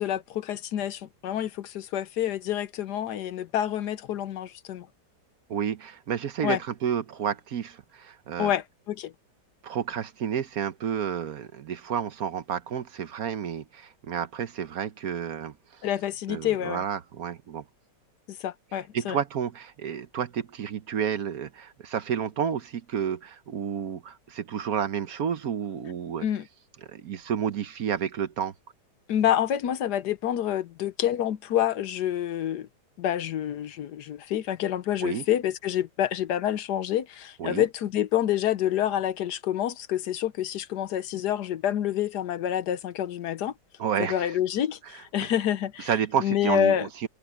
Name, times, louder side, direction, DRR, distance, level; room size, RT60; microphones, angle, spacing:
voice 1, 0.0-4.9 6.4-6.6 8.4-9.1 15.8-16.8 18.3-19.2 26.2-26.4 29.1-32.7 33.0-43.5 44.0-45.9 46.2-46.9, left 11 dB, 70° left, 1.3 m, -28 dB
voice 2, 5.5-8.5 9.6-15.8 16.3-17.6 18.9-26.2 26.9-28.5 35.0-35.2 37.4-37.6 43.8-44.3 45.9-47.1, right 8 dB, 60° right, 1.2 m, -30 dB
open air
omnidirectional pair, 1.9 m